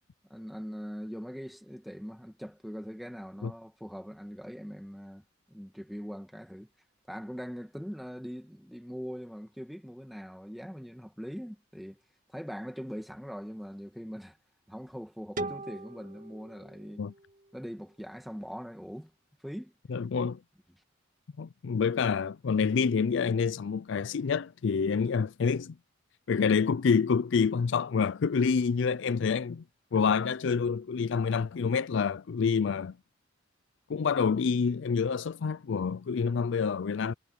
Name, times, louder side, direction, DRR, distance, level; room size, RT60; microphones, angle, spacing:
voice 1, 0.3-6.7 7.1-12.0 12.3-14.4 14.7-17.1 17.5-19.1 19.4-19.7, equal, ahead, 1.9 m, -41 dB
sound 1, 15.4-18.2, right 2 dB, 40° right, 2.1 m, -41 dB
voice 2, 19.9-20.4 21.4-25.7 26.3-29.6 29.9-33.0 33.9-37.1, left 5 dB, 65° left, 0.4 m, -27 dB
head